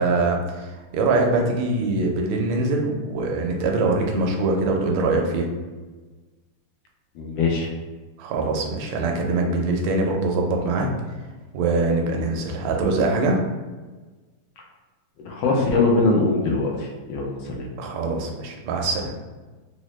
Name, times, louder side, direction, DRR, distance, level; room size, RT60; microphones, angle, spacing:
voice 1, 0.0-5.5 8.2-10.9 11.5-13.4 17.8-19.1, right 3 dB, 85° right, 1 dB, 1.5 m, -23 dB
voice 2, 7.1-7.7 15.2-17.7, left 3 dB, 75° left, -1 dB, 1.1 m, -22 dB
3.8 x 2.0 x 3.0 m, 1.3 s
omnidirectional pair, 2.3 m